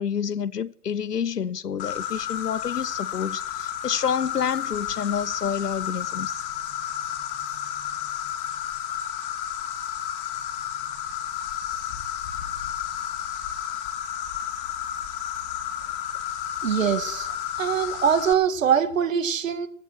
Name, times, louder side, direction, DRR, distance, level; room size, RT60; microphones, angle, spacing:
voice 1, 0.0-6.4, left 7 dB, 85° left, 0.9 m, -28 dB
Insect, 1.8-18.3, left 10 dB, 35° left, 2.4 m, -32 dB
voice 2, 16.6-19.7, right 8 dB, 55° right, 2.0 m, -23 dB
15.5 x 15.0 x 6.0 m
hypercardioid pair, 140°, 46 cm